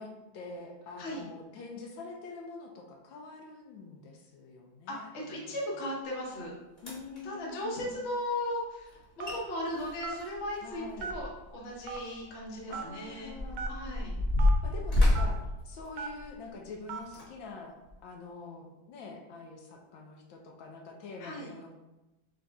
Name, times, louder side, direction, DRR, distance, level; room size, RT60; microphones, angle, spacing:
voice 1, 0.0-5.6 6.8-8.0 10.6-11.1 12.7-14.1 14.6-17.7 18.0-21.7, left 3 dB, 80° left, 1 dB, 1.4 m, -46 dB
voice 2, 4.9-6.5 7.2-13.3 13.7-14.1 21.2-21.5, left 1 dB, 45° left, -3 dB, 1.0 m, -37 dB
sound 1, 6.3-6.4 6.8-7.2 8.9-9.0 9.2-9.4 9.7-11.5 11.8-12.0 12.7-16.4 17.0-17.3 17.9-18.0, left 1 dB, 25° left, 1.2 m, -28 dB
Telephone, 9.2-9.5 10.0-10.2 11.0-11.4 11.9-12.0 12.7-12.9 13.5-13.7 14.4-14.5 15.1-15.3 16.0-16.2 16.9-17.1, right 6 dB, 75° right, 1.1 m, -37 dB
4.0 x 3.7 x 3.4 m, 1.0 s
omnidirectional pair, 2.1 m